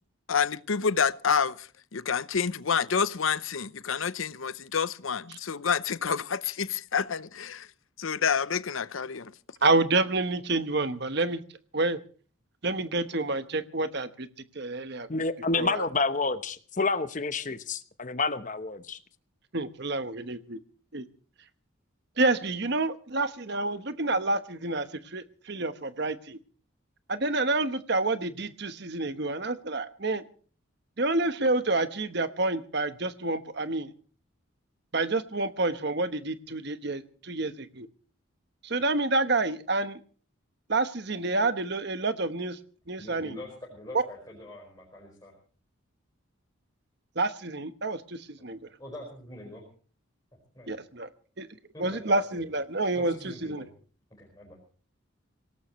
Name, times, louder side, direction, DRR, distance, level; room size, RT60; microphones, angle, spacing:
voice 1, 0.3-7.7 8.0-9.3, left 6 dB, 75° left, 0.7 m, -28 dB
voice 2, 9.6-11.4 11.7-12.0 12.6-14.3 14.5-15.1 15.6-15.8 19.5-20.6 20.9-21.0 22.2-26.4 27.1-30.2 31.0-33.9 34.9-37.9 38.6-40.0 40.7-42.6 42.9-43.4 43.9-44.0 47.2-48.6 50.7-51.1 51.4-51.5 51.8-53.7, right 2 dB, 50° right, 1.1 m, -28 dB
voice 3, 15.1-19.0, left 3 dB, 35° left, 0.9 m, -29 dB
voice 4, 43.0-45.3 48.4-48.5 48.8-49.6 50.5-50.7 51.7-52.4 52.9-53.7 54.2-54.6, left 1 dB, 20° left, 5.0 m, -44 dB
25.5 x 18.0 x 3.1 m
head